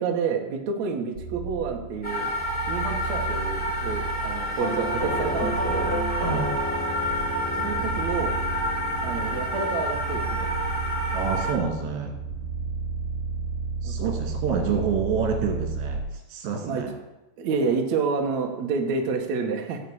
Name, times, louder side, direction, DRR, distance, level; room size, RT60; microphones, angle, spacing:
voice 1, 0.0-2.3 2.7-5.9 7.5-8.3 9.0-10.5 13.8-14.2 16.6-16.8 17.4-19.8, right 5 dB, 60° right, 2 dB, 2.0 m, -29 dB
sound 1, 1.2-16.0, right 5 dB, 40° right, 3.8 m, -33 dB
sound 2, 2.0-11.5, equal, 10° left, 2.1 m, -29 dB
Doorbell, 4.6-13.4, left 2 dB, 80° left, 1.0 m, -34 dB
voice 2, 11.1-12.1 13.8-16.9, right 6 dB, 75° right, 2 dB, 4.6 m, -28 dB
16.5 x 5.8 x 8.6 m, 0.96 s
omnidirectional pair, 5.1 m